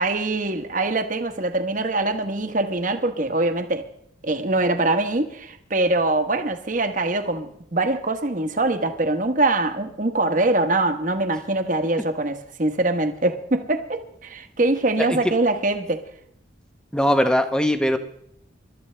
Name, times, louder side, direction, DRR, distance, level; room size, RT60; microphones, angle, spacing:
voice 1, 0.0-3.9 4.2-16.0, right 2 dB, 40° right, 1.1 m, -23 dB
voice 2, 16.9-18.0, equal, 5° left, 0.9 m, -20 dB
25.0 x 12.5 x 3.3 m
head